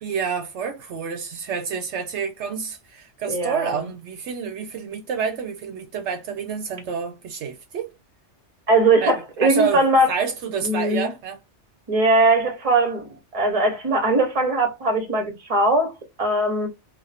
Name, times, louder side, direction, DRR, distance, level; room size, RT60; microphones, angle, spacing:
voice 1, 0.0-7.9 9.0-11.4, right 6 dB, 75° right, 0.8 m, -28 dB
voice 2, 3.3-3.8 8.7-10.1 10.6-11.1 11.9-15.9 16.2-16.7, right 2 dB, 30° right, 0.9 m, -20 dB
2.5 x 2.3 x 4.0 m
omnidirectional pair, 1.2 m